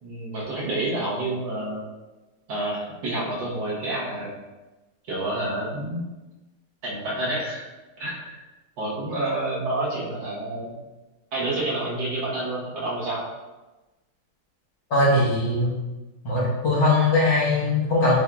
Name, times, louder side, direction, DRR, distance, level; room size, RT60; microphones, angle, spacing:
voice 1, 0.0-1.8 2.5-4.3 5.1-6.0 6.8-7.7 8.0-8.3 8.8-10.8 11.3-13.3, right 2 dB, 65° right, -7 dB, 1.7 m, -28 dB
voice 2, 14.9-15.7 16.2-18.2, left 2 dB, 60° left, -7 dB, 1.7 m, -20 dB
7.3 x 2.6 x 2.3 m, 1.1 s
omnidirectional pair, 2.4 m